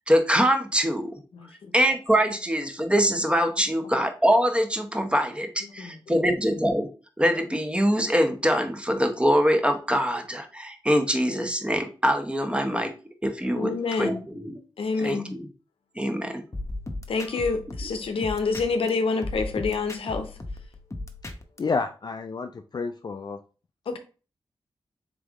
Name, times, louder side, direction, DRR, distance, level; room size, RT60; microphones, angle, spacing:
voice 1, 0.1-1.1 1.7-6.9 7.2-12.9 13.2-14.6 15.0-15.5 16.0-16.4, equal, 10° right, 5 dB, 0.9 m, -24 dB
voice 2, 13.5-14.2 14.8-15.3 17.1-20.3 23.9-24.0, left 4 dB, 80° left, 7 dB, 0.7 m, -27 dB
sound 1, 16.5-18.9 19.2-21.6, left 2 dB, 30° left, 0.8 m, -36 dB
voice 3, 21.6-23.4 23.9-24.0, left 4 dB, 45° left, 7 dB, 0.4 m, -30 dB
3.7 x 3.4 x 3.6 m, 0.35 s
cardioid pair, 50°, 9 cm